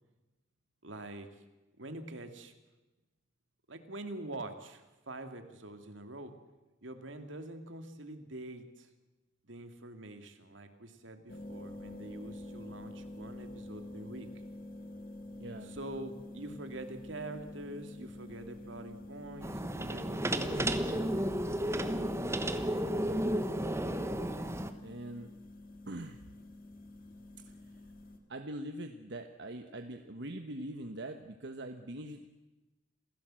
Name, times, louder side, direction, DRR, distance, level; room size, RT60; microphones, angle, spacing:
voice 1, 0.8-1.4 1.8-2.5 3.7-6.4 6.8-8.9 9.4-14.3 15.6-21.2, right 2 dB, 80° right, 7 dB, 2.4 m, -45 dB
sound 1, 11.3-28.2, left 1 dB, 50° left, 2.7 m, -48 dB
voice 2, 15.4-15.7 23.0-23.3 24.8-25.3 25.9-26.2 28.3-32.4, right 1 dB, 65° right, 6 dB, 1.2 m, -43 dB
sound 2, 19.4-24.7, right 1 dB, 15° right, 1.2 m, -32 dB
28.0 x 16.0 x 7.7 m, 1.1 s
head